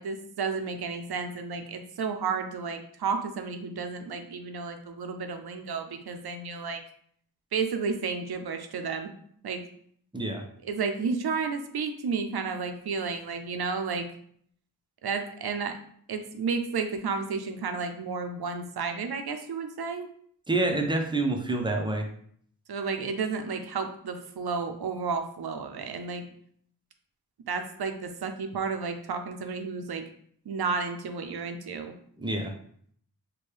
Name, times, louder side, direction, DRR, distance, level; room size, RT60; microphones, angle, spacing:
voice 1, 0.0-6.8 7.5-9.1 9.4-9.6 10.6-14.1 15.0-15.8 16.1-20.1 20.8-20.9 22.7-26.2 27.5-30.0 30.5-31.9, right 5 dB, 75° right, 6 dB, 0.6 m, -32 dB
voice 2, 10.1-10.4 20.5-22.1 32.2-32.5, right 2 dB, 10° right, 2 dB, 0.5 m, -27 dB
4.4 x 2.2 x 3.2 m, 0.63 s
wide cardioid pair, 80°, 39 cm